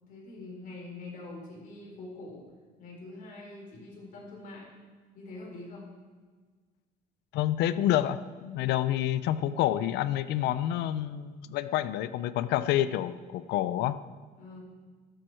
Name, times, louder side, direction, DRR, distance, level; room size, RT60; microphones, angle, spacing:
voice 1, 0.0-2.5 2.8-4.7 5.1-5.9 14.3-14.6, left 2 dB, 55° left, -2 dB, 5.0 m, -44 dB
voice 2, 7.3-14.0, left 12 dB, 85° left, 14 dB, 0.6 m, -28 dB
13.0 x 12.5 x 4.5 m, 1.5 s
cardioid pair, 145°, 17 cm